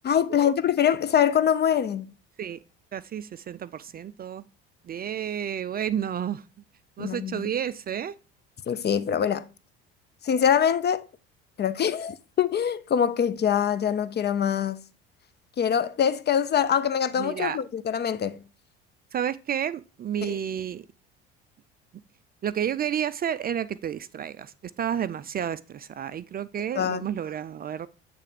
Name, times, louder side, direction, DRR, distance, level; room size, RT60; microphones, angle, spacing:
voice 1, 0.0-2.1 7.0-7.5 8.7-9.5 10.2-11.1 11.6-14.8 15.6-18.4 20.2-20.4 26.7-27.0, left 8 dB, 35° left, 0.6 m, -24 dB
voice 2, 2.9-4.5 4.9-6.4 7.0-8.1 17.2-17.6 19.1-20.9 22.4-27.9, right 9 dB, 30° right, 0.4 m, -31 dB
8.2 x 3.4 x 5.1 m
hypercardioid pair, 75°, 29 cm